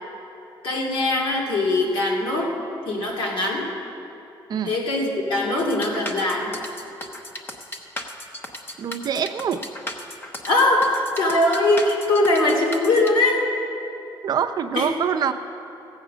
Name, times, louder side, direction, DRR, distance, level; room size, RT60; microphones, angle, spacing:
voice 1, 0.6-2.5 2.9-3.7 4.6-6.5 10.4-13.4 14.7-14.9, left 2 dB, 80° left, -2 dB, 2.4 m, -21 dB
sound 1, 5.6-13.1, left 1 dB, 25° left, 1.0 m, -35 dB
voice 2, 8.8-9.6 14.2-15.3, right 8 dB, 55° right, 8 dB, 0.6 m, -24 dB
16.0 x 8.0 x 6.2 m, 2.9 s
cardioid pair, 135°, 8 cm